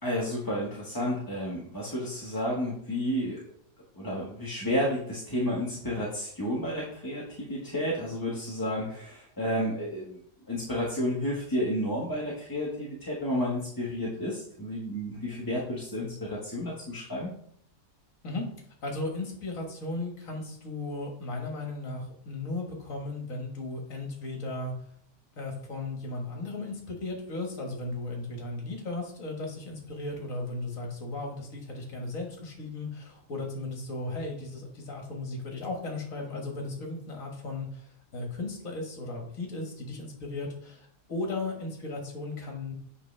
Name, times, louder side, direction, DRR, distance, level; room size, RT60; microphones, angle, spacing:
voice 1, 0.0-3.4 3.9-10.2 10.5-17.3, equal, 15° left, -6 dB, 1.3 m, -31 dB
voice 2, 18.8-24.7 25.4-42.7, left 2 dB, 50° left, 1 dB, 2.0 m, -36 dB
8.0 x 5.5 x 3.3 m, 0.66 s
omnidirectional pair, 1.8 m